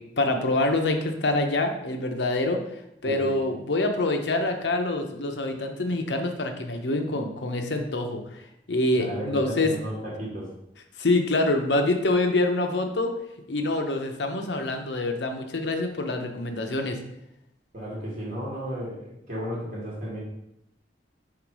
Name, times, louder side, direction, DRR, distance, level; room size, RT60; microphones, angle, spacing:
voice 1, 0.0-2.6 3.0-9.7 11.0-13.1 13.5-17.0, left 2 dB, 85° left, 5 dB, 0.8 m, -26 dB
voice 2, 8.9-10.4 17.7-20.2, equal, 45° right, -5 dB, 2.4 m, -33 dB
5.8 x 3.9 x 4.7 m, 0.82 s
head